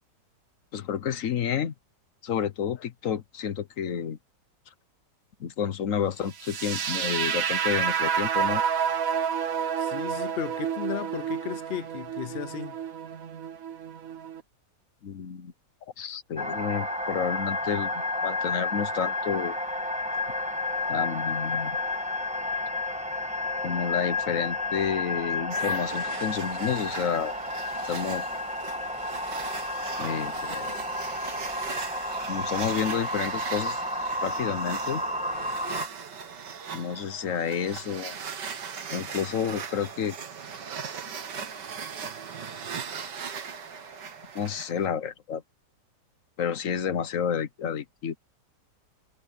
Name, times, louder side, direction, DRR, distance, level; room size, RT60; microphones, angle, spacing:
voice 1, 0.7-1.7 2.2-4.2 5.4-8.6 15.0-15.5 16.0-19.6 20.9-21.8 23.6-27.3 27.8-28.3 30.0-30.8 32.3-33.8 34.2-35.0 36.7-38.2 38.9-40.1 44.3-45.4 46.4-48.2, left 8 dB, 55° left, 1.2 m, -30 dB
sound 1, 6.4-14.4, right 7 dB, 55° right, 1.5 m, -29 dB
voice 2, 9.8-12.8, left 10 dB, 85° left, 0.5 m, -35 dB
sound 2, 16.4-35.9, left 2 dB, 5° right, 1.6 m, -31 dB
sound 3, 25.5-44.9, right 6 dB, 75° right, 2.2 m, -39 dB
omnidirectional pair, 1.9 m